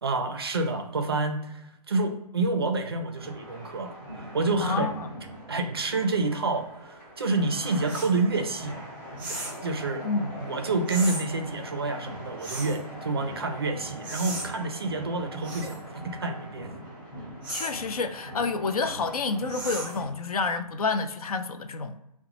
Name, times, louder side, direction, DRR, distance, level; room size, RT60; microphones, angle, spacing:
voice 1, 0.0-4.9 5.5-8.8 9.6-16.7, right 3 dB, 35° right, 0.4 m, -28 dB
sound 1, 3.2-20.0, equal, 15° left, 1.4 m, -42 dB
voice 2, 4.6-5.1 10.0-10.2 17.5-22.0, left 4 dB, 60° left, 0.5 m, -29 dB
sound 2, 7.9-8.1 9.2-9.6 10.9-11.2 12.4-12.8 14.0-14.5 15.4-15.8 17.4-17.8 19.5-20.0, right 2 dB, 5° right, 1.0 m, -36 dB
4.9 x 2.1 x 2.9 m
hypercardioid pair, 175°, 21 cm